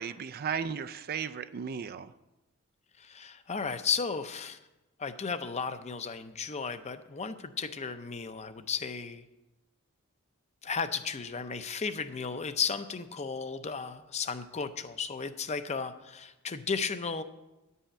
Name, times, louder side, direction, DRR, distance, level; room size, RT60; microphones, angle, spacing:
voice 1, 0.0-2.1, right 7 dB, 45° right, 13 dB, 0.4 m, -35 dB
voice 2, 3.0-4.6 5.0-9.2 10.6-17.2, left 5 dB, 30° left, 10 dB, 0.6 m, -34 dB
10.5 x 5.6 x 8.6 m, 1.0 s
head